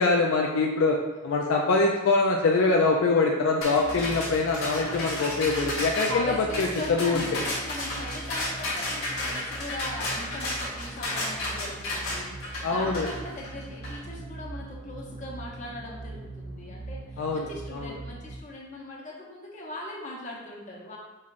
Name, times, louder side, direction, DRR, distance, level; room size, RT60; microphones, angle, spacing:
voice 1, 0.0-7.4 12.6-13.1 17.2-17.9, left 3 dB, 65° left, 0 dB, 0.4 m, -24 dB
sound 1, 3.6-14.0, left 1 dB, 85° left, 1.4 m, -33 dB
sound 2, 3.6-18.4, right 2 dB, 40° right, 0.4 m, -41 dB
voice 2, 3.9-5.7 5.9-21.0, left 1 dB, 35° left, -3 dB, 0.8 m, -40 dB
5.5 x 3.1 x 2.5 m, 1.1 s
head